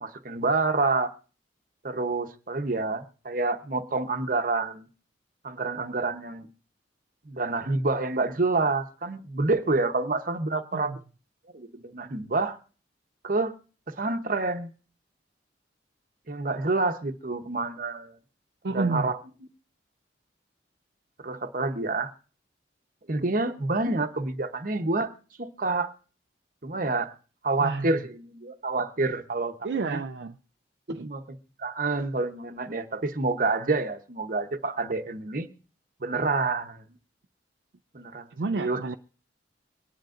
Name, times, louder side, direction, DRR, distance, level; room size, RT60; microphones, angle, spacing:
voice 1, 0.0-1.1 1.8-4.9 5.4-6.5 7.3-10.9 11.5-12.6 13.2-13.5 14.0-14.7 16.3-18.2 18.7-19.2 21.2-22.1 23.1-25.1 25.4-25.9 26.6-27.1 27.4-29.5 29.9-30.0 30.9-31.2 31.6-35.5 36.0-36.8 37.9-38.3 38.5-38.8, right 3 dB, 50° right, 8 dB, 0.9 m, -28 dB
voice 2, 18.6-19.1 27.6-27.9 29.6-30.4 30.9-31.1 38.4-39.0, right 3 dB, 65° right, 6 dB, 0.5 m, -30 dB
24.0 x 10.5 x 2.5 m, 0.39 s
head